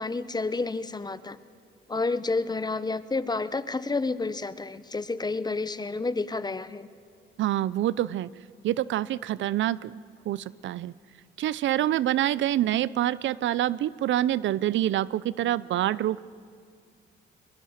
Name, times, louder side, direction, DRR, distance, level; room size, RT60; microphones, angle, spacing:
voice 1, 0.0-1.4 1.9-6.9, left 3 dB, 20° left, 15 dB, 1.0 m, -30 dB
voice 2, 7.4-8.3 8.6-10.9 11.4-16.2, right 13 dB, 70° right, 20 dB, 0.6 m, -26 dB
22.5 x 22.0 x 6.5 m, 2.3 s
cardioid pair, 90°, 20 cm